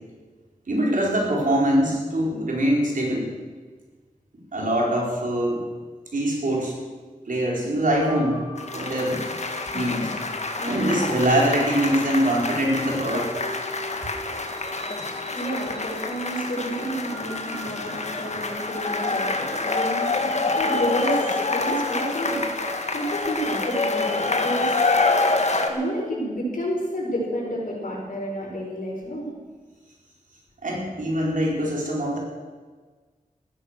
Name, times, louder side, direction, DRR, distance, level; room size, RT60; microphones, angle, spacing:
voice 1, 0.7-3.3 4.5-5.6 6.1-6.8 7.3-8.4 8.7-9.3 9.7-10.1 10.6-13.4 30.6-32.2, right 1 dB, 75° right, -2 dB, 4.6 m, -23 dB
sound 1, 8.0-27.5, equal, 30° right, 4.8 m, -43 dB
sound 2, 8.6-25.7, left 3 dB, 55° left, 1.9 m, -27 dB
voice 2, 10.5-11.0 13.7-20.3 20.6-22.4 22.9-24.7 25.6-29.3, equal, 75° left, -4 dB, 6.9 m, -30 dB
15.5 x 13.0 x 6.6 m, 1.4 s
wide cardioid pair, 65°, 14 cm